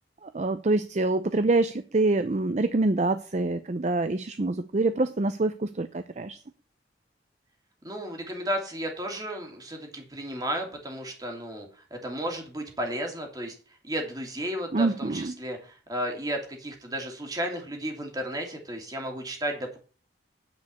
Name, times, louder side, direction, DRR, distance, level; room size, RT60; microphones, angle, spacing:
voice 1, 0.2-6.4 14.7-15.3, right 2 dB, 40° right, 0.5 m, -26 dB
voice 2, 7.8-13.5 13.8-19.8, equal, 20° right, 2.7 m, -33 dB
9.4 x 5.3 x 8.1 m
head